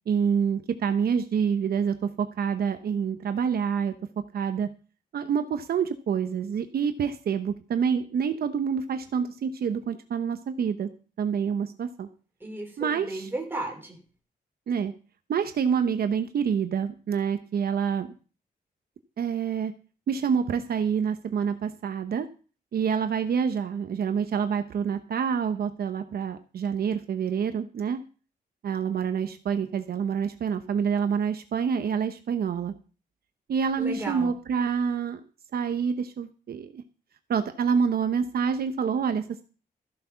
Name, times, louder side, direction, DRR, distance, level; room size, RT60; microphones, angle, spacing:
voice 1, 0.1-3.9 4.3-4.7 5.1-10.9 11.2-12.1 12.8-13.3 14.7-14.9 15.3-18.1 19.2-19.7 20.1-22.3 22.7-28.0 28.6-32.7 33.5-35.2 35.5-36.8 37.3-39.4, right 7 dB, 70° right, 8 dB, 0.9 m, -27 dB
voice 2, 12.4-14.0 33.8-34.3, right 2 dB, 15° right, 1 dB, 3.4 m, -34 dB
14.0 x 7.6 x 5.8 m, 0.37 s
wide cardioid pair, 170°, 16 cm